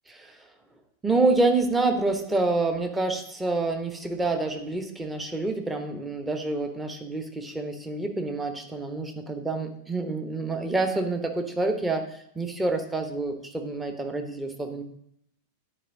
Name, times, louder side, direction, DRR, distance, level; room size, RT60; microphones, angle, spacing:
voice 1, 0.1-0.4 1.0-14.8, right 3 dB, 10° right, 5 dB, 1.0 m, -27 dB
10.0 x 4.6 x 3.9 m, 0.71 s
figure-of-eight pair, 90°, 0 cm